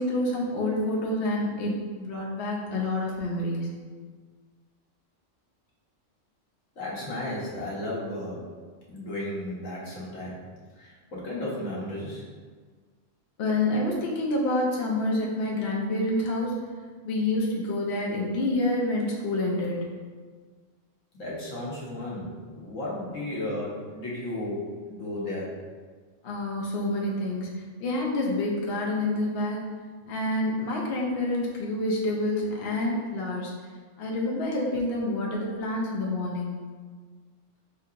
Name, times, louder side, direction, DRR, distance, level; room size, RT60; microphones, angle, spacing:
voice 1, 0.0-3.7 13.4-16.6 17.0-19.8 26.2-27.5 27.8-29.6 30.1-33.5 34.0-36.6, left 1 dB, 60° left, -3 dB, 0.8 m, -28 dB
voice 2, 6.8-8.4 8.9-10.4 10.8-12.2 21.2-25.5, left 1 dB, 75° left, -6 dB, 1.4 m, -34 dB
5.7 x 2.8 x 2.4 m, 1.5 s
omnidirectional pair, 1.3 m